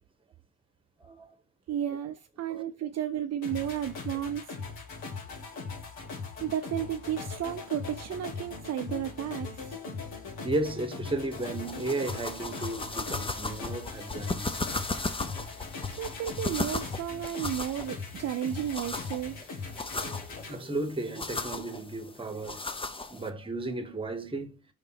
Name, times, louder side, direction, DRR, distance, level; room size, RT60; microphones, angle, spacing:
voice 1, 1.7-4.4 6.4-9.8 16.0-19.4, right 10 dB, 45° right, 0.5 m, -33 dB
sound 1, 3.4-20.6, left 4 dB, 85° left, 2.8 m, -40 dB
voice 2, 10.4-14.6 20.0-22.8 23.1-24.6, right 2 dB, 15° right, 1.2 m, -34 dB
sound 2, 11.3-23.3, left 3 dB, 15° left, 0.6 m, -37 dB
5.2 x 3.6 x 5.7 m
cardioid pair, 115°, 36 cm